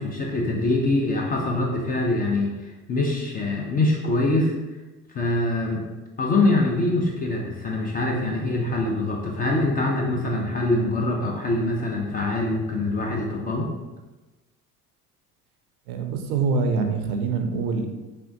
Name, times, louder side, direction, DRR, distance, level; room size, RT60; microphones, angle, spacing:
voice 1, 0.0-2.5 2.9-4.5 5.1-5.8 6.2-13.7, left 2 dB, 20° left, -1 dB, 0.3 m, -24 dB
voice 2, 15.9-17.9, right 4 dB, 70° right, 5 dB, 0.6 m, -25 dB
3.4 x 2.4 x 2.6 m, 1.2 s
hypercardioid pair, 65°, 47 cm